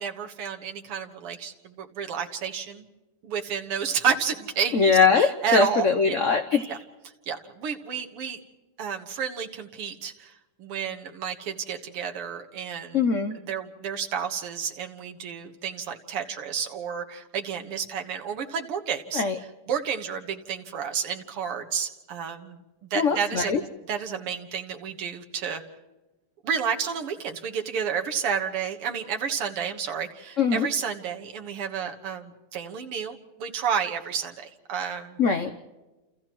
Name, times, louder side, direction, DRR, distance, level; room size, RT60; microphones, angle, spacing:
voice 1, 0.0-2.9 3.2-6.2 6.7-6.8 7.3-8.4 8.8-10.3 10.6-13.0 13.3-19.2 19.7-25.6 26.4-35.2, right 7 dB, 85° right, 3 dB, 2.4 m, -31 dB
voice 2, 4.7-6.7 12.9-13.4 19.1-19.4 22.9-23.6 30.4-30.7 35.2-35.5, left 5 dB, 60° left, 8 dB, 0.8 m, -22 dB
29.5 x 28.5 x 3.1 m, 1.1 s
omnidirectional pair, 2.4 m